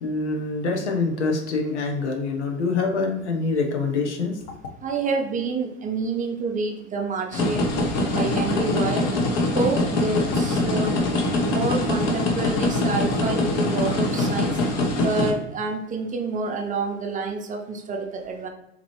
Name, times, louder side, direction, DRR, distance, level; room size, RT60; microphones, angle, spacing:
voice 1, 0.0-4.4, left 3 dB, 80° left, 2 dB, 0.9 m, -25 dB
voice 2, 4.8-7.7 8.1-9.1 9.5-10.9 11.4-14.5 15.0-18.5, right 3 dB, 25° right, 3 dB, 0.6 m, -28 dB
sound 1, 7.3-15.3, left 2 dB, 45° left, 0.9 m, -23 dB
4.0 x 2.9 x 3.0 m, 0.89 s
hypercardioid pair, 90°, 34 cm